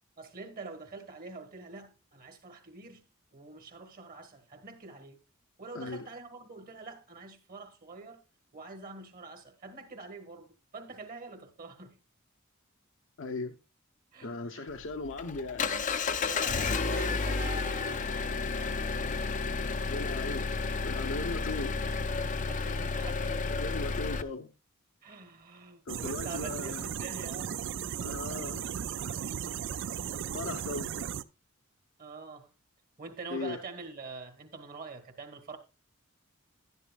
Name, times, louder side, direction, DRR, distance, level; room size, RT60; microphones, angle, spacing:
voice 1, 0.2-3.0 3.3-5.2 5.6-8.2 8.5-12.0 14.1-14.7 16.1-19.1 20.9-21.1 22.3-23.7 25.0-27.6 32.0-32.5 33.0-35.6, right 3 dB, 45° right, 1.7 m, -45 dB
voice 2, 5.7-6.1 13.2-13.5 14.2-15.7 19.9-20.5 20.8-21.7 23.5-24.5 25.9-26.9 28.0-28.7 29.0-29.2 30.3-30.9 33.3-33.6, left 3 dB, 65° left, 0.8 m, -38 dB
Engine, 14.7-24.2, left 4 dB, 35° left, 0.6 m, -31 dB
sound 1, 25.9-31.2, right 8 dB, 60° right, 0.4 m, -36 dB
11.0 x 10.5 x 2.4 m
head